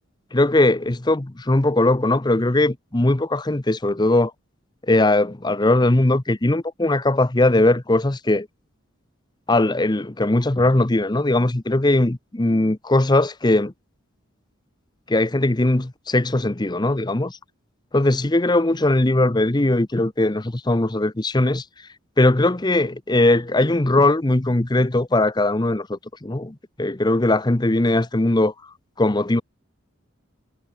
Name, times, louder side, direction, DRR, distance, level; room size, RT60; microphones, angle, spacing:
voice 1, 0.3-4.3 4.9-8.5 9.5-13.7 15.1-17.4 17.9-21.6 22.2-28.5 29.0-29.4, left 2 dB, 20° left, 0.8 m, -19 dB
head